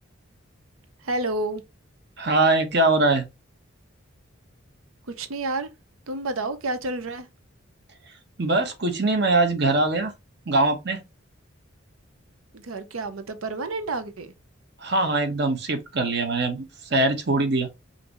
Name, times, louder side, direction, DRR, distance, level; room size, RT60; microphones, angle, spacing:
voice 1, 1.0-1.6 5.1-5.7 6.1-7.3 12.5-14.3, right 2 dB, 90° right, 0.7 m, -30 dB
voice 2, 2.2-3.2 8.4-10.1 10.5-11.0 14.8-16.6 16.9-17.7, right 2 dB, 55° right, 1.1 m, -22 dB
5.7 x 2.7 x 3.0 m
head